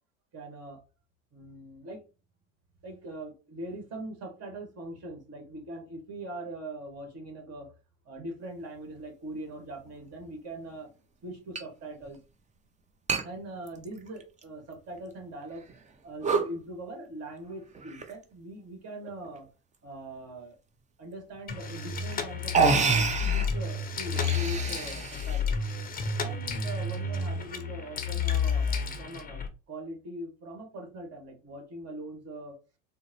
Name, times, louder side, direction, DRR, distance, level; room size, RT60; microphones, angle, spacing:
voice 1, 0.3-0.8 1.3-2.0 2.8-7.7 8.0-10.9 11.2-12.2 13.2-15.6 16.0-19.5 19.8-20.6 21.0-25.6 26.2-32.5, right 1 dB, 40° right, 3 dB, 1.4 m, -41 dB
sound 1, 9.9-10.0 11.5-11.6 12.0-12.1 13.1-13.2 13.7-14.4 15.0-15.1 15.7-15.9 16.2-16.5 17.7-18.2 19.0-19.4 21.3-21.4 22.1-22.2 22.5-23.5 24.0-25.4, right 4 dB, 20° right, 0.5 m, -28 dB
sound 2, 21.5-29.5, left 5 dB, 25° left, 0.6 m, -31 dB
3.7 x 2.0 x 2.9 m, 0.31 s
supercardioid pair, 95°, 37 cm